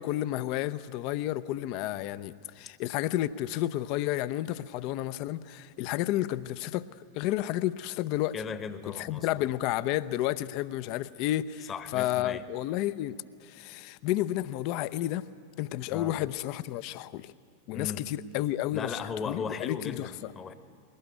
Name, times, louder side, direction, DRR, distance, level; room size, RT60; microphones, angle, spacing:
voice 1, 0.0-6.9 7.2-8.4 8.9-15.3 15.6-17.3 17.7-20.3, left 14 dB, 45° left, 0.6 m, -31 dB
voice 2, 8.3-9.5 11.7-12.4 15.9-16.2 17.7-18.1 18.7-20.5, left 6 dB, 25° left, 1.1 m, -37 dB
22.0 x 18.5 x 9.3 m
figure-of-eight pair, 90°, 0 cm